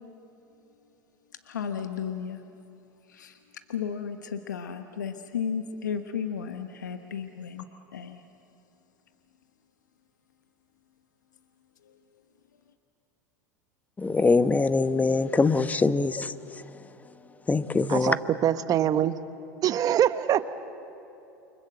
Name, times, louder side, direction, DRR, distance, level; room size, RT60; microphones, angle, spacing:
voice 1, 1.4-2.4 3.1-3.4 3.7-7.6 7.9-8.2, left 7 dB, 85° left, 1.2 m, -33 dB
voice 2, 14.0-16.3 17.5-18.1, left 3 dB, 15° left, 1.0 m, -23 dB
voice 3, 17.9-19.1 19.6-20.4, right 10 dB, 40° right, 1.2 m, -24 dB
29.0 x 25.0 x 7.8 m
hypercardioid pair, 90°, 10 cm